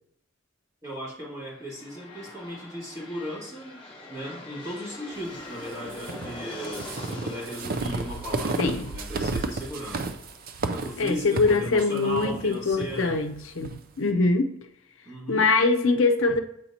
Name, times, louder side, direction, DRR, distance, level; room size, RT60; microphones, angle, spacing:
voice 1, 0.8-10.1 10.7-13.2 15.1-15.4, equal, 15° right, -7 dB, 1.8 m, -37 dB
sound 1, 1.4-11.3, left 2 dB, 25° left, 1.1 m, -44 dB
sound 2, 5.9-13.8, right 3 dB, 45° right, 0.4 m, -32 dB
voice 2, 8.6-8.9 11.0-14.5 15.3-16.4, left 3 dB, 65° left, 6 dB, 0.6 m, -23 dB
8.0 x 4.3 x 2.8 m, 0.75 s
head